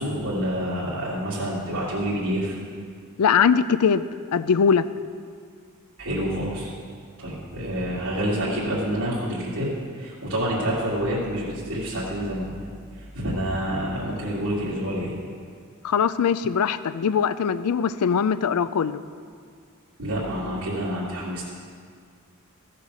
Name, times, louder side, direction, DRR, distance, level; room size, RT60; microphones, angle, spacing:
voice 1, 0.0-2.6 6.0-6.7 7.2-9.7 9.9-12.6 12.9-15.1 20.0-21.4, equal, 85° right, -10 dB, 2.5 m, -28 dB
voice 2, 3.2-4.0 4.3-4.8 15.8-19.0, left 6 dB, 90° left, 14 dB, 0.4 m, -21 dB
14.5 x 6.8 x 6.3 m, 2.1 s
head